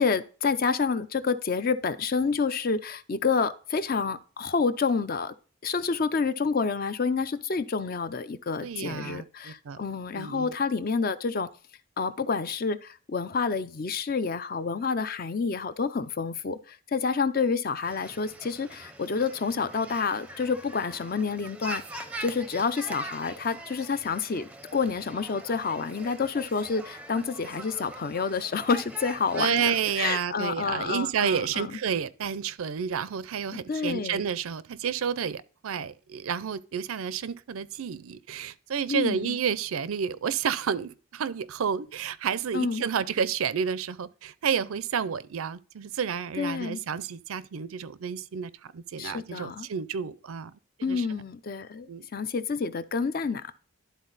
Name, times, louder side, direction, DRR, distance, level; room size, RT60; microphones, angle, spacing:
voice 1, 0.0-5.3 5.6-11.5 12.0-31.8 33.7-34.3 38.9-39.4 42.5-42.8 46.4-46.8 49.0-49.7 50.8-53.5, left 5 dB, 40° left, 0.5 m, -29 dB
voice 2, 8.6-9.8 10.1-10.5 29.3-50.5 50.8-51.1 51.9-52.1, right 7 dB, 75° right, 0.5 m, -30 dB
sound 1, 17.8-30.1, right 2 dB, 5° right, 0.5 m, -43 dB
11.5 x 4.1 x 3.9 m
head